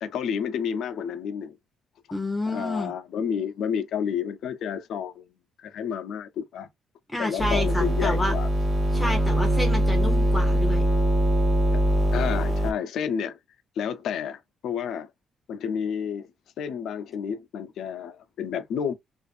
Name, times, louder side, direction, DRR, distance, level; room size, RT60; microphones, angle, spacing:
voice 1, 0.0-1.6 2.5-5.2 5.6-6.7 7.2-8.5 11.7-11.8 12.1-13.4 13.8-15.1 15.5-16.3 16.6-18.9, left 7 dB, 75° left, 0.5 m, -30 dB
voice 2, 2.1-2.9 7.1-8.3 8.9-10.9, left 1 dB, 5° left, 0.7 m, -29 dB
sound 1, 7.4-12.7, equal, 40° right, 1.0 m, -22 dB
2.4 x 2.4 x 2.5 m
cardioid pair, 135°, 0 cm